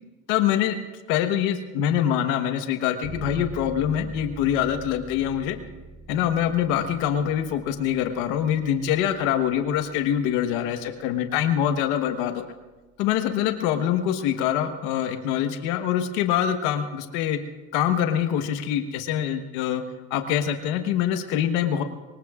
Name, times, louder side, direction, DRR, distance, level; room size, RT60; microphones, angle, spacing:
voice 1, 0.3-0.8 1.1-5.6 6.1-12.5 13.0-17.4 17.7-19.8 20.1-21.8, left 10 dB, 90° left, 7 dB, 1.3 m, -24 dB
sound 1, 3.0-13.6, right 2 dB, 40° right, 1.7 m, -44 dB
24.5 x 23.0 x 2.4 m, 1.2 s
supercardioid pair, 85°, 41 cm